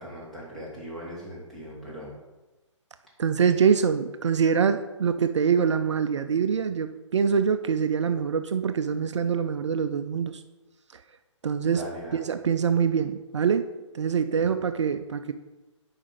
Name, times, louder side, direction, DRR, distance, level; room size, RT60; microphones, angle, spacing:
voice 1, 0.0-2.1 11.6-12.3 14.4-14.5, equal, ahead, -8 dB, 2.1 m, -39 dB
voice 2, 3.2-10.4 11.4-11.8 12.2-13.7 13.9-15.3, right 6 dB, 65° right, 9 dB, 0.5 m, -24 dB
7.3 x 4.9 x 5.0 m, 1.1 s
figure-of-eight pair, 135°, 16 cm